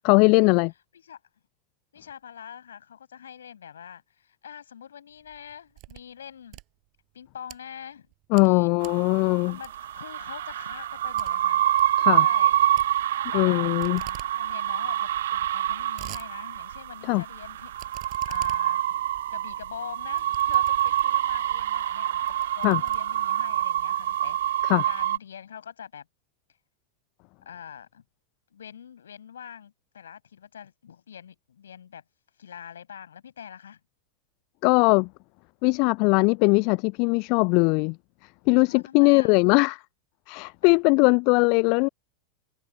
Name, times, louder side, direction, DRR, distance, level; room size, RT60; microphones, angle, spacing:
voice 1, 0.0-0.7 8.3-9.6 12.0-12.3 13.3-14.0 17.0-17.2 22.6-22.8 24.6-24.9 34.6-35.1 35.6-38.0 38.5-39.8 40.3-41.9, left 33 dB, 45° left, 0.4 m, -20 dB
voice 2, 1.9-6.6 7.1-8.1 8.4-8.7 9.5-11.7 12.2-12.6 13.3-17.7 18.2-18.8 19.3-22.2 22.6-26.1 27.5-28.0 28.5-32.0 32.4-33.8 38.7-39.4 40.6-40.7, left 8 dB, 65° left, 7.2 m, -44 dB
sound 1, 5.2-6.1 6.4-7.6 8.1-8.5 8.8-9.1 9.6-10.0 10.4-10.5 10.8-10.9 11.2-11.3 11.6-11.9 12.8-13.5 13.8-14.3 14.7-14.8 14.9-15.0 15.6-16.3 16.7-16.8 17.8-21.3 21.8-22.0 22.3-23.5, right 21 dB, 40° right, 5.7 m, -45 dB
sound 2, 8.8-25.2, right 12 dB, 60° right, 0.7 m, -26 dB
figure-of-eight pair, 90°, 0 cm